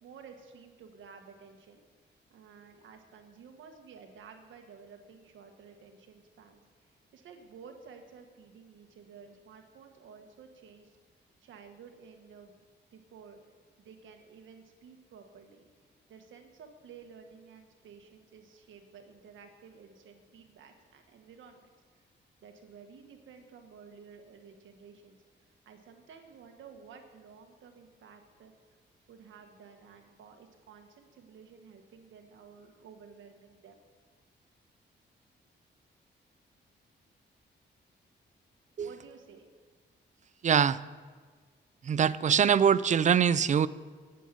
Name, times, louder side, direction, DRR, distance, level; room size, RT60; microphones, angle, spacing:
voice 1, 0.0-1.8 2.3-6.6 7.1-10.9 11.4-12.6 12.9-13.4 13.8-15.6 16.1-21.7 22.0-22.1 22.4-25.2 25.7-28.5 29.1-33.8 38.8-39.5, right 6 dB, 90° right, 5 dB, 1.6 m, -53 dB
voice 2, 40.4-40.8 41.8-43.7, right 8 dB, 40° right, 17 dB, 0.4 m, -23 dB
10.0 x 8.5 x 9.1 m, 1.5 s
cardioid pair, 115°, 19 cm